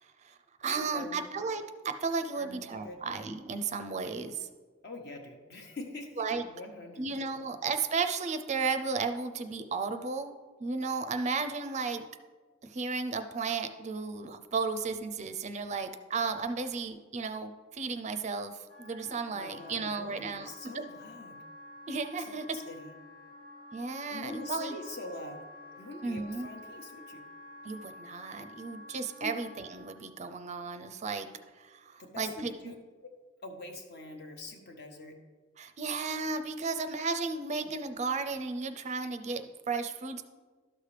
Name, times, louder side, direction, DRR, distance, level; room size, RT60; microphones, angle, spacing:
voice 1, 0.0-4.5 6.2-6.4 7.0-10.3 10.6-12.0 12.6-20.7 21.9-22.4 23.7-24.7 26.0-26.5 27.6-31.3 31.6-32.7 35.6-40.2, right 4 dB, 35° right, 8 dB, 0.4 m, -34 dB
voice 2, 0.7-1.3 2.3-3.0 4.8-7.1 7.3-7.5 19.3-21.4 22.2-22.3 22.5-22.9 24.1-25.4 25.8-27.2 29.2-29.3 32.0-33.1 33.4-35.1, left 2 dB, 55° left, 3 dB, 1.2 m, -44 dB
Wind instrument woodwind instrument, 18.7-30.0, left 1 dB, 85° left, 1.9 m, -50 dB
12.0 x 6.5 x 3.3 m, 1.4 s
head